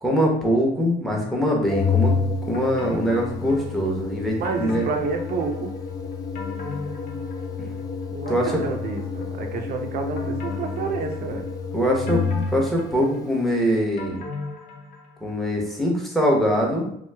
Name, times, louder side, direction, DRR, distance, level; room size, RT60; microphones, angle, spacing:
voice 1, 0.0-4.8 7.6-7.7 8.3-8.5 11.7-12.2 12.5-14.2 15.2-16.9, equal, ahead, -2 dB, 0.8 m, -23 dB
sound 1, 1.1-1.9 2.5-4.0 4.4-5.8 6.1-7.8 8.3-9.6 10.2-11.6 12.1-15.3 15.6-15.7, left 3 dB, 55° left, 0.7 m, -38 dB
Organ, 1.7-12.7, left 5 dB, 20° left, 0.4 m, -29 dB
voice 2, 4.4-5.7 8.1-11.5, right 4 dB, 60° right, 3 dB, 0.6 m, -29 dB
3.0 x 2.0 x 3.3 m, 0.72 s
cardioid pair, 110°, 17 cm